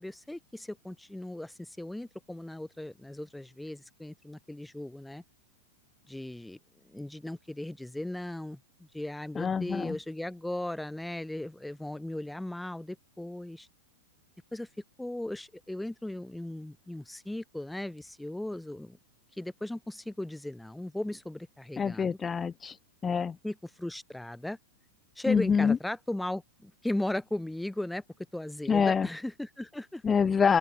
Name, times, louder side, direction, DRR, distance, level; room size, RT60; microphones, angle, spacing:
voice 1, 0.0-5.2 6.1-6.6 6.8-13.7 14.5-14.7 15.0-19.0 19.3-22.2 23.4-24.6 25.1-28.0 28.3-30.0, left 1 dB, 5° left, 1.4 m, -37 dB
voice 2, 9.4-10.0 21.8-22.8 23.0-23.4 25.3-25.8 28.7-29.1 30.0-30.6, left 6 dB, 20° left, 0.7 m, -26 dB
open air
hypercardioid pair, 110°, 0 cm